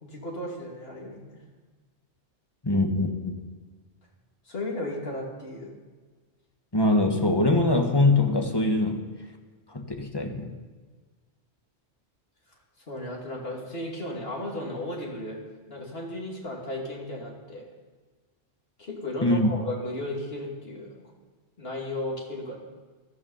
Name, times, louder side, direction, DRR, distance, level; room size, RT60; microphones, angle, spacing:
voice 1, 0.0-1.4 4.4-5.7 12.9-15.4 15.7-17.6 18.8-21.1 21.6-22.6, left 1 dB, 55° left, -1 dB, 3.0 m, -35 dB
voice 2, 2.6-3.3 6.7-9.0 9.7-10.5 19.2-19.5, left 2 dB, 20° left, 3 dB, 1.5 m, -23 dB
16.5 x 12.5 x 5.6 m, 1.4 s
omnidirectional pair, 1.2 m